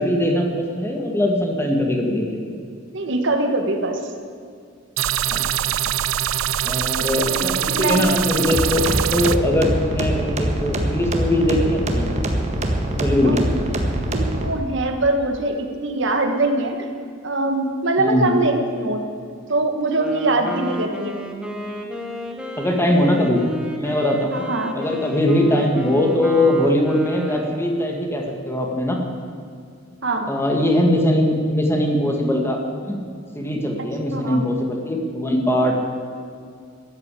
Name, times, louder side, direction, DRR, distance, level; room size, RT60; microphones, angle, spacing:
voice 1, 0.0-2.6 5.3-5.4 6.6-8.8 9.1-12.1 13.0-13.4 18.0-18.4 22.6-23.4 23.7-24.5 24.7-29.0 30.3-33.0 33.3-35.7, left 1 dB, 10° left, 1 dB, 2.0 m, -21 dB
voice 2, 2.9-4.1 7.3-7.4 7.6-8.1 13.2-13.4 14.1-16.9 17.2-19.0 19.5-21.2 24.3-24.7 30.0-30.3 34.1-34.4, right 2 dB, 65° right, 5 dB, 1.6 m, -22 dB
sound 1, 5.0-9.4, right 10 dB, 80° right, 0.5 m, -23 dB
sound 2, 8.5-14.5, right 1 dB, 35° right, 1.7 m, -23 dB
Wind instrument woodwind instrument, 19.8-27.8, equal, 5° right, 1.4 m, -32 dB
13.5 x 11.0 x 8.4 m, 2.3 s
head